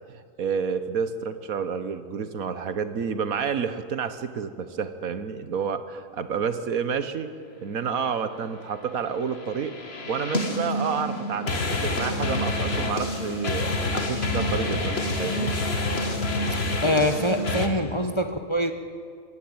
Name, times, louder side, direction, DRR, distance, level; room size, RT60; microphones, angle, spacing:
voice 1, 0.4-7.3 7.6-9.8 10.1-15.5, right 6 dB, 75° right, 11 dB, 1.6 m, -29 dB
sound 1, 9.3-17.7, left 2 dB, 45° left, 1.9 m, -27 dB
voice 2, 16.8-18.7, left 1 dB, 20° left, 6 dB, 1.0 m, -24 dB
26.0 x 16.0 x 8.8 m, 2.1 s
omnidirectional pair, 1.5 m